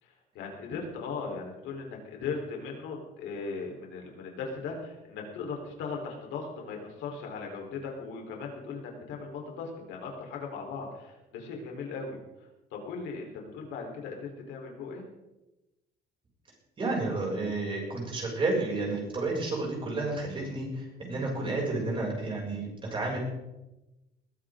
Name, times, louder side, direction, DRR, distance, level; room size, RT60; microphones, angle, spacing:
voice 1, 0.0-15.0, left 4 dB, 80° left, 1 dB, 4.1 m, -38 dB
voice 2, 16.8-23.2, right 2 dB, 30° right, -2 dB, 6.8 m, -31 dB
21.0 x 15.0 x 3.8 m, 0.99 s
cardioid pair, 155°, 19 cm